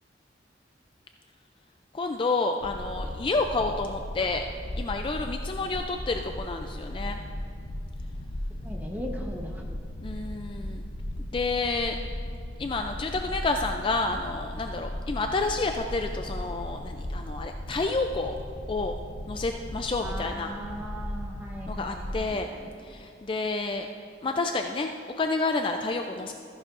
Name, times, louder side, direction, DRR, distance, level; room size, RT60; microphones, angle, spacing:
voice 1, 1.9-4.4 4.8-7.2 10.0-10.9 11.3-12.0 12.6-18.4 18.7-18.9 19.3-20.5 21.7-22.5 22.8-23.9 24.2-26.3, left 3 dB, 25° left, 5 dB, 0.3 m, -29 dB
sound 1, 2.6-22.3, left 1 dB, 80° left, 0.8 m, -37 dB
voice 2, 8.6-9.6 20.0-22.7, equal, 10° right, 0 dB, 1.0 m, -39 dB
14.0 x 11.0 x 2.5 m, 2.6 s
head